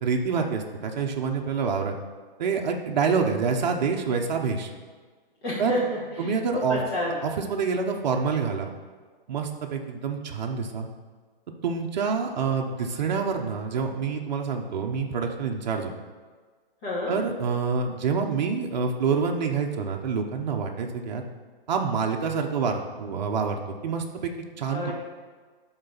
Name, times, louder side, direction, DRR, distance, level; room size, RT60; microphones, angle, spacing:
voice 1, 0.0-2.0 2.4-4.7 5.6-5.7 6.2-6.8 7.2-8.7 9.3-10.9 11.6-15.9 17.1-21.3 21.7-24.9, right 5 dB, 50° right, 2 dB, 0.9 m, -27 dB
voice 2, 5.4-7.2 16.8-17.2 24.7-24.9, left 1 dB, 30° left, -7 dB, 2.5 m, -29 dB
11.0 x 4.0 x 4.0 m, 1.5 s
hypercardioid pair, 165°, 29 cm